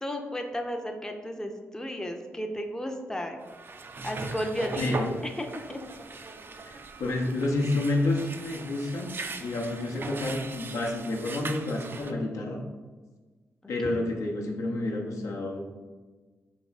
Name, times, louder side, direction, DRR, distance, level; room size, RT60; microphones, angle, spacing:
voice 1, 0.0-3.4 4.0-5.0 5.4-5.8 13.6-14.2, equal, 10° left, 4 dB, 0.6 m, -34 dB
sound 1, 3.4-12.1, right 3 dB, 45° right, 0.4 m, -39 dB
voice 2, 4.7-5.1 6.6-12.6 13.7-15.6, left 2 dB, 75° left, 1 dB, 0.7 m, -29 dB
3.5 x 3.0 x 4.1 m, 1.3 s
supercardioid pair, 55°, 5 cm